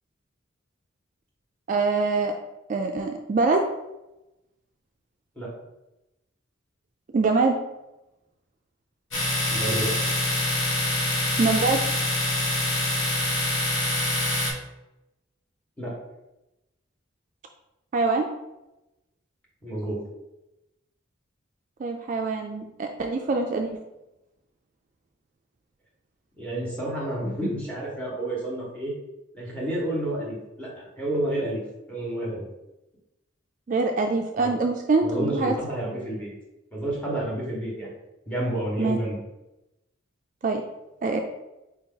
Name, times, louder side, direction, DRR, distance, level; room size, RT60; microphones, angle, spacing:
voice 1, 1.7-2.3 2.7-3.6 7.1-7.6 11.4-11.8 17.9-18.3 21.8-23.8 33.7-35.5 38.8-39.0 40.4-40.6 41.0-41.2, right 3 dB, 40° right, 3 dB, 0.3 m, -24 dB
Domestic sounds home sounds, 9.1-14.5, left 1 dB, 80° left, 1.4 m, -25 dB
voice 2, 9.5-9.9 15.8-15.9 19.6-20.0 26.4-28.9 29.3-31.6 31.9-32.4 34.4-34.5 35.0-36.3 36.7-37.9 38.3-39.2, right 1 dB, 5° left, -5 dB, 1.3 m, -30 dB
4.6 x 2.8 x 3.7 m, 0.95 s
head